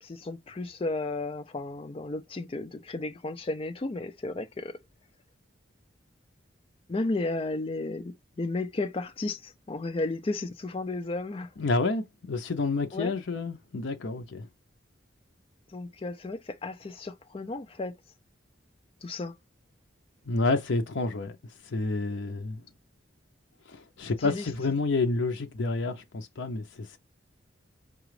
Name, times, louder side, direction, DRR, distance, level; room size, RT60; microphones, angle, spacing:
voice 1, 0.0-4.8 6.9-11.5 12.9-13.1 15.7-18.0 19.0-19.3 24.2-24.5, left 2 dB, 30° left, 0.4 m, -33 dB
voice 2, 11.6-14.5 20.3-21.3 21.6-22.6 23.7-27.0, left 3 dB, 70° left, 0.6 m, -29 dB
4.9 x 2.4 x 3.1 m
head